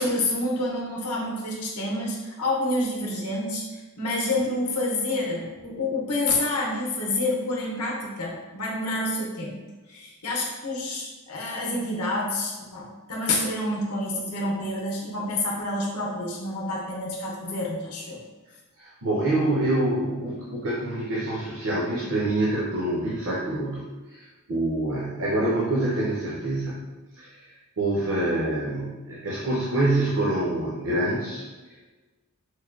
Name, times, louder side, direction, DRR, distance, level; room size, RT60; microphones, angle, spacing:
voice 1, 0.0-9.6 9.9-18.2, left 2 dB, 85° left, -2 dB, 0.7 m, -28 dB
voice 2, 18.8-23.8 24.1-26.9 27.2-31.8, right 1 dB, 60° right, -5 dB, 0.6 m, -26 dB
4.6 x 2.2 x 2.3 m, 1.2 s
head